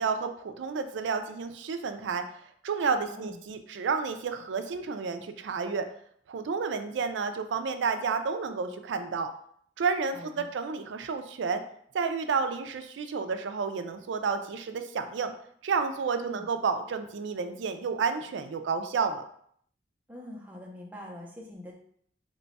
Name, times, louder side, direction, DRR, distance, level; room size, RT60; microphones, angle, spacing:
voice 1, 0.0-2.2 2.6-5.8 6.3-9.3 9.8-11.6 11.9-15.3 15.6-19.2, right 5 dB, 75° right, 8 dB, 0.4 m, -30 dB
voice 2, 3.1-3.4 10.1-10.5 16.1-16.5 20.1-21.7, left 1 dB, 10° right, -2 dB, 0.5 m, -44 dB
3.0 x 2.2 x 4.0 m, 0.64 s
head